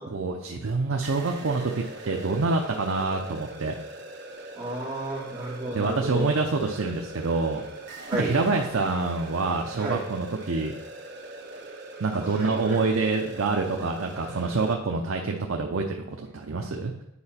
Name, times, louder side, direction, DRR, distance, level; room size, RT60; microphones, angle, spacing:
voice 1, 0.0-3.8 5.7-7.6 8.1-10.7 12.0-16.9, right 3 dB, 70° right, 2 dB, 0.6 m, -26 dB
sound 1, 1.0-14.7, right 2 dB, 55° right, 1.1 m, -41 dB
voice 2, 4.5-6.3 8.1-8.4 9.7-10.0 12.2-12.8, right 1 dB, 5° right, -10 dB, 2.8 m, -32 dB
8.6 x 4.8 x 4.3 m, 0.84 s
head